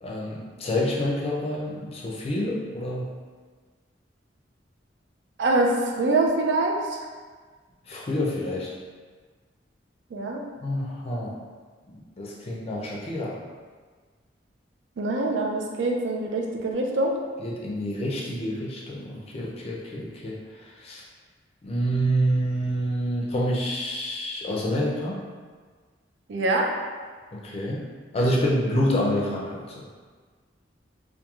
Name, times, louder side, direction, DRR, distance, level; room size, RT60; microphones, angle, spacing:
voice 1, 0.0-3.1 7.9-8.7 10.6-11.4 11.9-13.4 17.4-20.4 20.8-21.0 21.6-25.2 27.3-27.9 28.1-29.9, equal, 35° left, -3 dB, 0.4 m, -27 dB
voice 2, 5.4-7.0 10.1-10.4 15.0-17.2 26.3-26.7, right 2 dB, 80° right, 0 dB, 0.4 m, -24 dB
2.9 x 2.2 x 2.3 m, 1.5 s
head